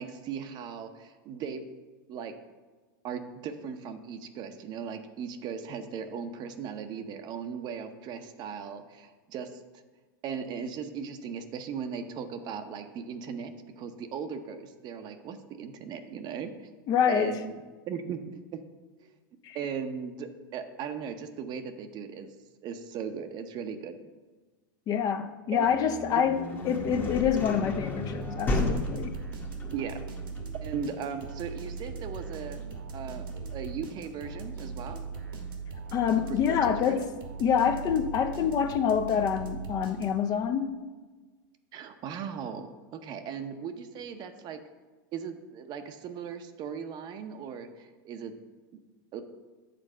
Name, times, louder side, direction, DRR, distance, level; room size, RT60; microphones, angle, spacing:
voice 1, 0.0-1.6 2.1-2.3 3.0-9.6 10.2-16.7 17.1-18.6 19.0-19.2 19.5-22.3 22.6-24.1 25.5-25.7 29.7-30.0 30.6-32.6 32.9-35.0 36.2-37.1 41.7-44.6 45.1-48.3 49.1-49.2, right 7 dB, 40° right, 8 dB, 0.7 m, -38 dB
voice 2, 16.9-17.4 19.4-19.6 24.9-26.4 26.6-29.1 35.9-37.1 37.4-40.8, left 8 dB, 35° left, 9 dB, 0.6 m, -26 dB
sound 1, 25.6-35.4, left 2 dB, 15° left, 1.0 m, -35 dB
sound 2, 28.2-40.4, right 5 dB, 85° right, 1.5 m, -39 dB
7.6 x 4.1 x 6.3 m, 1.3 s
hypercardioid pair, 115°, 11 cm